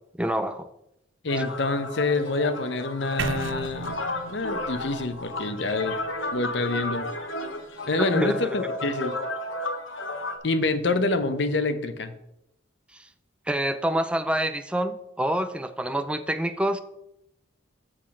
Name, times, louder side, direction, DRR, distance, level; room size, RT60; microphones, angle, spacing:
voice 1, 0.2-0.7 1.4-1.5 8.0-8.5 12.9-13.1 13.5-16.8, right 1 dB, 5° right, 10 dB, 0.4 m, -27 dB
voice 2, 1.2-6.0 6.3-7.1 7.9-9.1 10.4-12.2, left 3 dB, 65° left, 10 dB, 0.8 m, -27 dB
sound 1, 1.3-10.4, left 2 dB, 85° left, 1.1 m, -33 dB
sound 2, 3.2-7.2, right 6 dB, 80° right, 0.4 m, -37 dB
6.3 x 5.9 x 6.2 m, 0.82 s
head